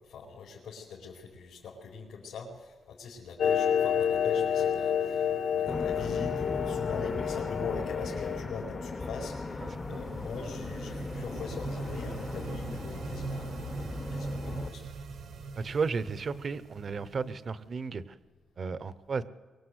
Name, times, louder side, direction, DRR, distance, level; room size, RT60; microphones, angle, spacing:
voice 1, 0.0-13.6 14.1-14.9, left 5 dB, 90° left, 4.5 m, -42 dB
Clock, 3.4-8.4, left 8 dB, 70° left, 1.6 m, -29 dB
sound 1, 5.7-14.7, left 3 dB, 20° left, 0.8 m, -38 dB
sound 2, 8.9-17.7, right 4 dB, 65° right, 1.4 m, -41 dB
voice 2, 15.6-18.0 18.6-19.2, right 5 dB, 35° right, 0.8 m, -33 dB
24.0 x 23.0 x 8.0 m
wide cardioid pair, 175°, 0 cm